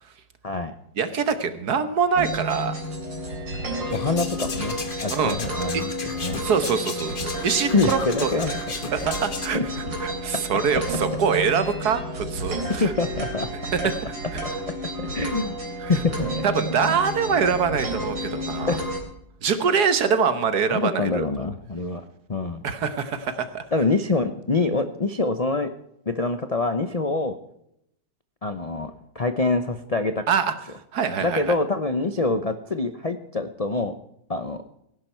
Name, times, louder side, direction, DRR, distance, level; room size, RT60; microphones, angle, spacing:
voice 1, 0.4-0.7 3.9-5.9 6.2-6.4 7.7-8.6 9.5-9.6 12.8-13.5 15.0-15.6 15.9-16.3 18.7-18.8 20.7-22.6 23.7-25.7 26.1-27.4 28.4-30.2 31.2-33.9 34.3-34.6, left 3 dB, 50° left, 9 dB, 0.4 m, -25 dB
voice 2, 1.0-2.7 5.1-5.4 5.7-5.8 6.4-8.3 8.9-9.6 10.0-12.9 13.7-13.9 14.3-14.4 15.8-15.9 16.4-18.8 19.4-21.2 22.6-23.6 30.3-30.5 30.9-31.5, right 6 dB, 60° right, 11 dB, 1.6 m, -24 dB
sound 1, 2.1-19.0, right 1 dB, 85° right, 4.1 m, -31 dB
sound 2, 3.9-9.5, left 4 dB, 35° left, 1.1 m, -35 dB
17.0 x 10.5 x 4.5 m, 0.76 s
omnidirectional pair, 1.9 m